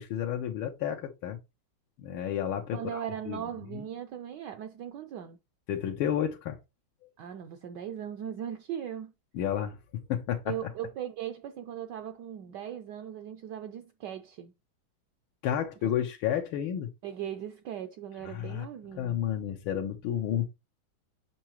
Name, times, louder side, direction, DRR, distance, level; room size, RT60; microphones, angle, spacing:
voice 1, 0.0-1.4 2.0-3.0 3.3-3.4 3.7-3.8 5.7-6.6 9.3-9.8 10.1-10.5 15.4-16.9 18.2-18.7 18.9-20.5, left 10 dB, 85° left, 1.7 m, -31 dB
voice 2, 2.7-5.4 7.2-9.1 10.5-14.5 15.8-15.9 17.0-19.2, right 9 dB, 70° right, 1.1 m, -38 dB
7.4 x 5.6 x 3.0 m
omnidirectional pair, 2.3 m